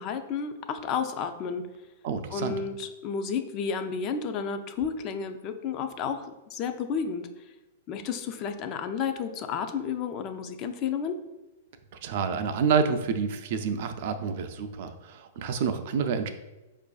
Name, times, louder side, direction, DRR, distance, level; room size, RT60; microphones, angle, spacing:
voice 1, 0.0-1.6 2.3-7.3 7.9-11.2, left 6 dB, 35° left, 7 dB, 0.3 m, -31 dB
voice 2, 2.0-2.5 12.0-16.3, right 6 dB, 60° right, 8 dB, 0.3 m, -28 dB
4.7 x 2.5 x 2.3 m, 1.1 s
hypercardioid pair, 135°, 0 cm